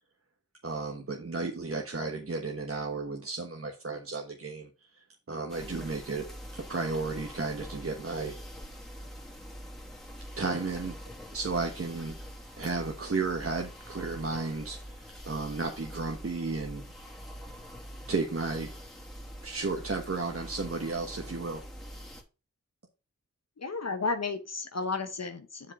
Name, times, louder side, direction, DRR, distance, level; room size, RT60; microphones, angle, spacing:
voice 1, 0.6-4.7 5.3-6.3 6.5-8.4 10.4-11.0 11.3-12.2 12.6-16.8 18.1-18.7 19.4-21.6, right 3 dB, 50° right, 1.2 m, -33 dB
sound 1, 5.5-22.2, equal, ahead, 2.5 m, -45 dB
voice 2, 23.6-25.7, left 4 dB, 60° left, 1.0 m, -33 dB
7.4 x 4.8 x 5.3 m
wide cardioid pair, 50°, 30 cm